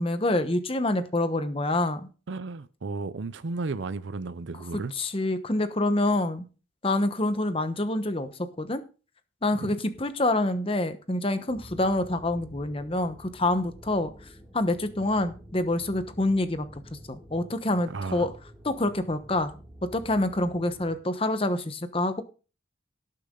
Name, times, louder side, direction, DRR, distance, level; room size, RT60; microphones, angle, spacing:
voice 1, 0.0-2.1 4.7-6.5 6.8-8.3 8.6-8.8 9.4-14.1 14.5-18.3 18.6-19.5 19.9-22.2, left 2 dB, 30° left, 10 dB, 1.0 m, -27 dB
voice 2, 2.3-4.9 9.5-9.7 17.9-18.3, right 3 dB, 65° right, 14 dB, 0.6 m, -34 dB
sound 1, 11.5-21.0, equal, 5° right, 2.6 m, -49 dB
17.5 x 6.8 x 3.8 m, 0.35 s
head